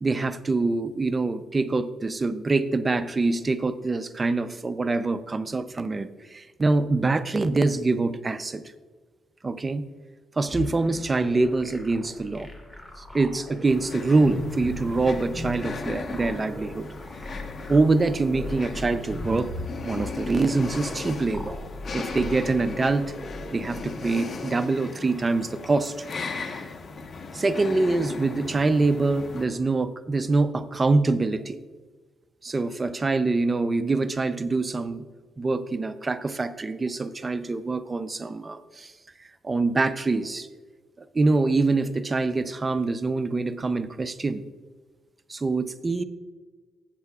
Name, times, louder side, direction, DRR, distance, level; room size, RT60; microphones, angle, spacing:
voice 1, 0.0-8.6 9.4-9.8 10.4-12.5 13.0-16.9 17.7-19.5 19.8-21.6 21.9-23.1 23.5-26.1 26.4-26.5 27.3-31.6 32.4-35.0 35.4-38.9 39.2-40.5 41.1-44.5 45.3-46.0, right 3 dB, 25° right, 11 dB, 0.6 m, -25 dB
sound 1, 10.5-24.1, left 1 dB, 10° left, 1.9 m, -38 dB
sound 2, 13.6-29.4, left 4 dB, 45° left, 1.2 m, -37 dB
14.0 x 8.0 x 2.4 m, 1.4 s
cardioid pair, 90°, 0 cm